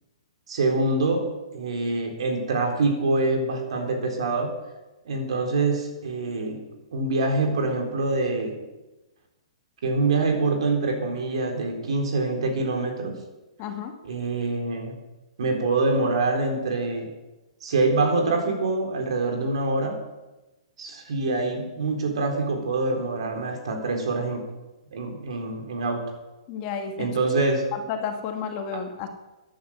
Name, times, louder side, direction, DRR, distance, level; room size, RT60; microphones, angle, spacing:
voice 1, 0.5-4.5 5.1-8.6 9.8-13.2 14.0-15.0 15.4-17.1 17.6-20.0 20.8-24.5 24.9-26.1 27.0-27.7 28.7-28.8, right 3 dB, 65° right, 3 dB, 3.9 m, -25 dB
voice 2, 13.6-13.9 26.5-27.1 27.7-29.1, left 6 dB, 35° left, 4 dB, 2.2 m, -31 dB
14.0 x 10.5 x 6.4 m, 1.1 s
hypercardioid pair, 125°, 3 cm